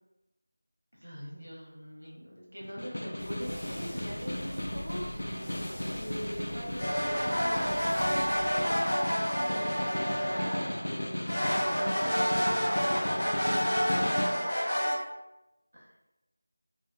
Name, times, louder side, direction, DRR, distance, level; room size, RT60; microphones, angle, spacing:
voice 1, 1.0-5.3 15.7-15.9, equal, 85° right, -4 dB, 1.0 m, -42 dB
Snare drum, 2.6-14.5, left 1 dB, 75° left, 0.3 m, -36 dB
sound 1, 3.2-8.8, equal, 20° left, 0.8 m, -43 dB
voice 2, 5.1-8.8 9.4-12.3 12.8-14.7, equal, 20° right, -6 dB, 0.4 m, -43 dB
sound 2, 6.8-10.9 11.3-14.9, equal, 40° left, 1.0 m, -29 dB
2.7 x 2.3 x 2.3 m, 0.98 s
figure-of-eight pair, 170°, 0 cm